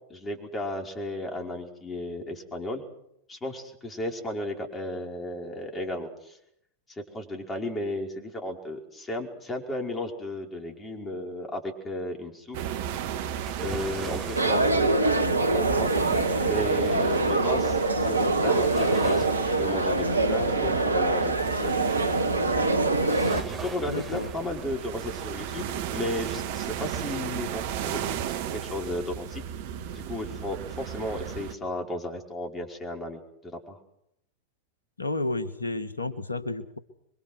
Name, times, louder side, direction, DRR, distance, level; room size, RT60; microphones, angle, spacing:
voice 1, 0.1-2.8 3.3-6.4 6.9-12.6 13.6-15.9 16.5-21.7 23.5-29.4 29.9-33.8, left 1 dB, 15° left, 3 dB, 5.2 m, -34 dB
sound 1, 12.5-31.6, right 9 dB, 50° right, 1.8 m, -35 dB
sound 2, 13.5-16.3 18.6-21.2 23.1-25.4 25.8-25.9, right 4 dB, 25° right, 8.0 m, -42 dB
sound 3, 14.3-23.4, right 2 dB, 80° right, 1.5 m, -24 dB
voice 2, 23.9-24.3 35.0-36.8, left 2 dB, 80° left, 12 dB, 1.9 m, -31 dB
27.0 x 23.5 x 6.4 m, 0.76 s
figure-of-eight pair, 90°, 0 cm